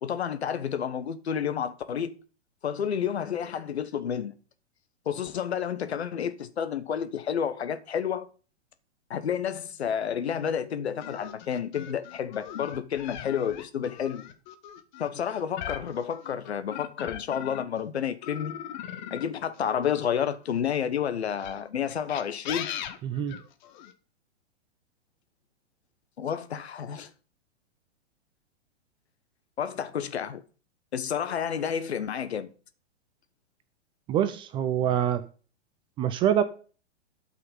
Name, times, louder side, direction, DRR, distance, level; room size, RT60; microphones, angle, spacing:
voice 1, 0.0-2.1 2.6-4.3 5.0-8.3 9.1-14.3 15.0-18.6 19.1-22.7 26.2-27.1 29.6-30.4 30.9-32.5, left 8 dB, 65° left, 1.3 m, -30 dB
sound 1, 11.0-17.8 18.2-20.6 21.3-23.9, left 11 dB, 40° left, 1.2 m, -40 dB
voice 2, 23.0-23.3 34.1-35.2 36.0-36.4, right 10 dB, 15° right, 0.5 m, -25 dB
12.0 x 5.8 x 5.4 m
figure-of-eight pair, 110°, 35 cm